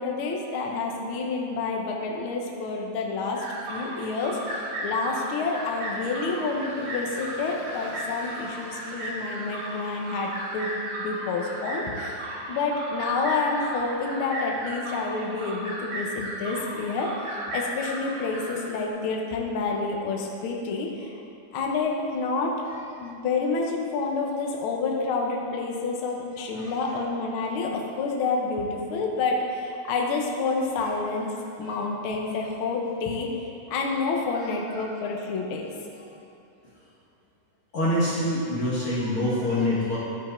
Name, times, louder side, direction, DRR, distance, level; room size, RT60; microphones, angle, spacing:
voice 1, 0.0-10.7 11.0-21.2 21.5-22.5 23.0-31.3 31.6-33.3 33.7-35.7, left 4 dB, 80° left, 0 dB, 1.1 m, -29 dB
sound 1, 3.3-18.9, right 1 dB, 75° right, 2.8 m, -35 dB
voice 2, 37.7-40.0, left 1 dB, 55° left, -7 dB, 1.7 m, -25 dB
13.0 x 5.2 x 4.4 m, 2.8 s
omnidirectional pair, 3.8 m